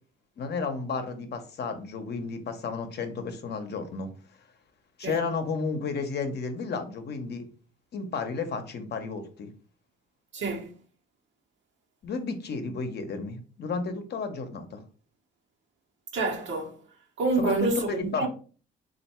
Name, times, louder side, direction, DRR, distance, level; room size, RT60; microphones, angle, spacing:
voice 1, 0.4-4.1 5.0-7.4 7.9-9.5 12.0-14.8 17.4-18.3, left 4 dB, 55° left, 0.8 m, -32 dB
voice 2, 10.3-10.7 16.1-16.8 17.2-18.3, right 3 dB, 70° right, 1.1 m, -28 dB
3.4 x 2.5 x 4.2 m
cardioid pair, 90°, 20 cm